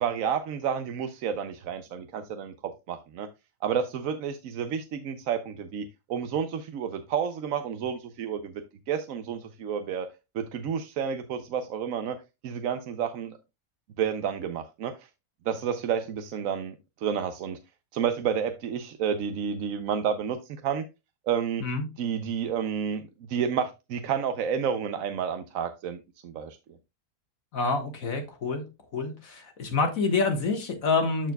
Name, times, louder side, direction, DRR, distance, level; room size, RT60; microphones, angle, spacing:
voice 1, 0.0-3.3 3.6-10.1 10.3-12.2 12.4-13.4 14.0-14.9 15.5-17.6 17.9-20.4 20.6-20.8 21.3-21.6 22.0-26.0 26.2-26.6, right 7 dB, 65° right, 9 dB, 1.0 m, -30 dB
voice 2, 27.5-28.6 28.9-31.3, left 4 dB, 65° left, 5 dB, 1.8 m, -27 dB
13.0 x 4.5 x 2.2 m, 0.25 s
omnidirectional pair, 1.6 m